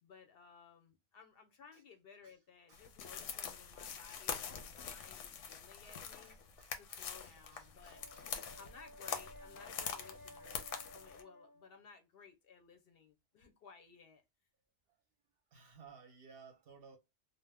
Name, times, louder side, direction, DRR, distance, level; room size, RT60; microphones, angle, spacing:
voice 1, 0.0-6.4 6.7-8.0 8.6-14.2, left 6 dB, 60° left, 0.7 m, -59 dB
sound 1, 2.7-11.2, left 7 dB, 85° left, 0.9 m, -45 dB
voice 2, 5.8-8.3 15.5-17.0, right 5 dB, 60° right, 0.7 m, -60 dB
Brass instrument, 7.7-11.9, left 1 dB, 20° left, 0.7 m, -56 dB
2.7 x 2.0 x 3.3 m
omnidirectional pair, 1.2 m